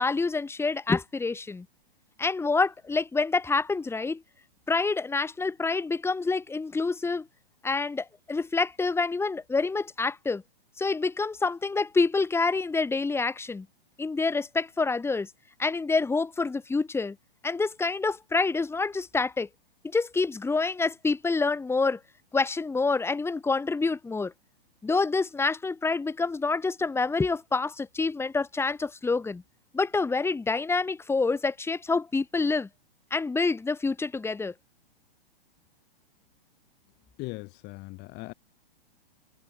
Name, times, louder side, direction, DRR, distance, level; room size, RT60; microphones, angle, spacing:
voice 1, 0.0-1.6 2.2-4.2 4.7-7.3 7.6-10.4 10.8-13.7 14.0-15.3 15.6-17.1 17.4-19.5 19.8-22.0 22.3-24.3 24.8-29.4 29.7-32.7 33.1-34.5, left 4 dB, 10° left, 4.7 m, -27 dB
voice 2, 37.2-38.3, left 24 dB, 35° left, 4.0 m, -39 dB
hypercardioid pair, 115°, 30 cm